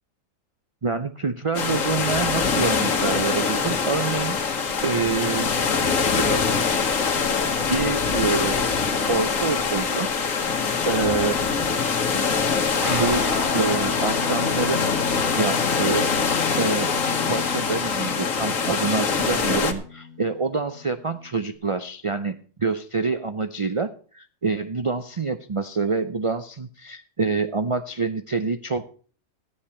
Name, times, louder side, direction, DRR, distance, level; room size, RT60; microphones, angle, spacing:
voice 1, 0.8-4.4 4.8-5.5 5.9-6.6 7.7-8.6 9.1-10.1 10.8-11.4 12.9-13.2 13.5-14.9 15.4-16.9 17.3-28.9, right 4 dB, 40° right, 10 dB, 0.4 m, -26 dB
sound 1, 1.5-19.7, left 5 dB, 80° left, 1.6 m, -24 dB
Guitar, 12.8-21.6, left 4 dB, 15° right, 3.5 m, -33 dB
13.5 x 10.0 x 4.3 m, 0.42 s
omnidirectional pair, 1.4 m